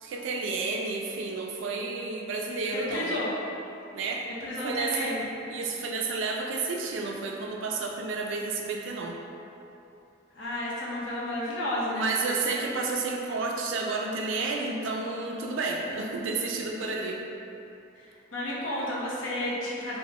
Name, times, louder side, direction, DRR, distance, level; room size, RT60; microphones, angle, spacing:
voice 1, 0.0-3.2 3.9-4.2 4.6-5.1 5.5-9.2 11.9-17.2, right 3 dB, 75° right, 0 dB, 0.3 m, -31 dB
voice 2, 2.7-3.3 4.4-5.2 10.3-12.4 18.0-20.0, left 1 dB, 75° left, -6 dB, 0.7 m, -32 dB
3.0 x 2.1 x 2.9 m, 2.8 s
head